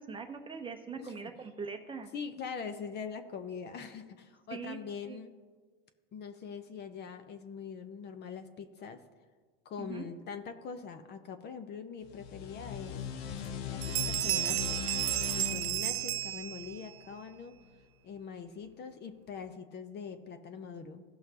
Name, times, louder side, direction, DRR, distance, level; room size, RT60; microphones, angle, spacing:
voice 1, 0.0-2.1 4.5-4.8 5.0-5.2 9.8-10.1, right 5 dB, 15° right, 5 dB, 0.7 m, -42 dB
voice 2, 2.1-5.3 6.1-9.0 9.6-13.0 13.7-15.0 15.3-17.6 18.0-21.0, left 6 dB, 35° left, 9 dB, 0.7 m, -43 dB
sound 1, 12.0-17.4, left 8 dB, 85° left, 0.8 m, -40 dB
Bell, 12.7-12.8 13.3-13.6 13.8-17.0, right 15 dB, 85° right, 0.5 m, -33 dB
16.5 x 5.7 x 2.8 m, 1.5 s
supercardioid pair, 115°, 31 cm